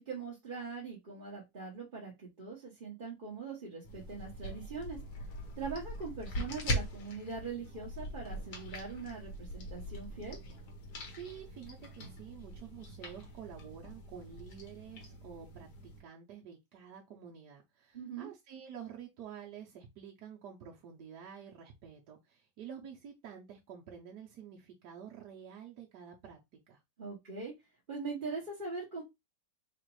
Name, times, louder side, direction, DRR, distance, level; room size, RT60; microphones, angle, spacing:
voice 1, 0.0-5.0 5.6-10.4 17.9-18.3 27.0-27.5 27.9-29.0, right 4 dB, 30° right, 1.2 m, -42 dB
sound 1, 3.8-16.0, equal, 65° left, 1.7 m, -42 dB
voice 2, 11.0-26.8, right 8 dB, 70° right, 1.3 m, -49 dB
4.0 x 2.5 x 4.6 m
omnidirectional pair, 1.9 m